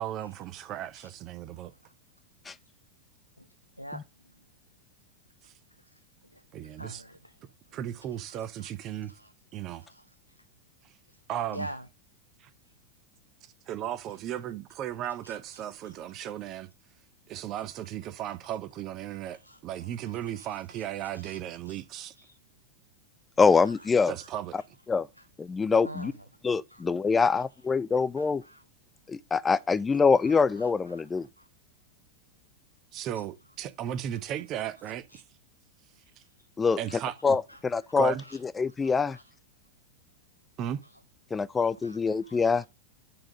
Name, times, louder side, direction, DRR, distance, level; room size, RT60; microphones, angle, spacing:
voice 1, 0.0-1.7 5.4-5.5 6.5-7.0 7.7-9.1 9.5-9.8 11.3-11.7 12.4-12.5 13.7-16.7 17.3-22.1 24.1-24.6 32.9-35.2 36.8-37.4 38.0-38.2 40.6-40.8, right 11 dB, 35° right, 0.8 m, -35 dB
voice 2, 6.3-7.4 8.3-8.7 9.0-9.3 9.8-10.4 11.1-11.2 11.5-11.9 15.0-15.9 16.2-16.3 18.4-18.5 19.0-21.4 21.6-22.4 23.6-23.9 24.2-24.3 25.2-25.3 25.8-26.3 26.7-26.8 27.1-27.4 27.9-28.6 29.9-31.0 31.4-31.5 33.1-33.3 35.1-35.2 36.1-36.5 36.9-37.0 37.5-37.6 38.2-38.4 38.8-39.2 40.8-41.0 41.6-42.7, equal, 90° right, 0.4 m, -48 dB
voice 3, 23.4-24.1 24.9-25.1 25.4-26.1 26.4-28.4 29.1-31.3 36.6-36.8 37.2-38.1 38.6-39.2 41.3-42.6, left 5 dB, 15° left, 0.4 m, -24 dB
8.8 x 3.7 x 5.2 m
figure-of-eight pair, 90°, 0 cm